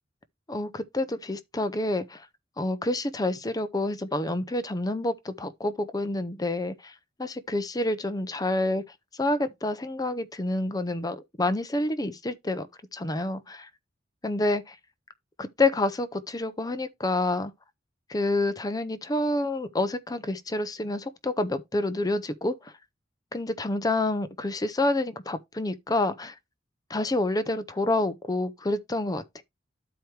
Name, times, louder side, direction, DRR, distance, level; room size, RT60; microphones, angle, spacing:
voice 1, 0.5-2.3 2.6-8.8 9.1-13.7 14.2-14.6 15.4-17.5 18.1-22.7 23.3-26.4 26.9-29.4, left 2 dB, 20° left, 0.6 m, -28 dB
12.0 x 4.6 x 3.3 m
head